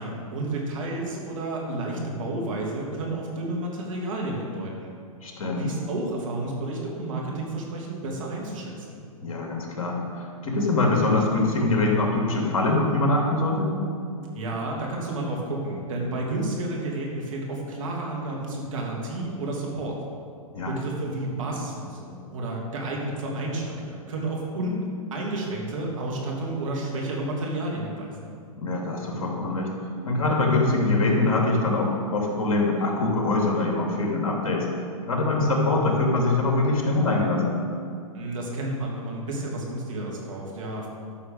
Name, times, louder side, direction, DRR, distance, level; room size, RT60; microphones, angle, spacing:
voice 1, 0.0-4.9 5.5-9.0 14.3-20.0 20.7-24.8 25.1-28.3 38.1-40.9, right 2 dB, 60° right, -1 dB, 3.0 m, -31 dB
voice 2, 5.2-5.7 9.2-13.7 20.5-20.7 28.5-29.7 30.0-34.7 35.1-37.6, left 2 dB, 65° left, -1 dB, 2.9 m, -23 dB
12.5 x 6.6 x 6.8 m, 2.4 s
hypercardioid pair, 115°, 18 cm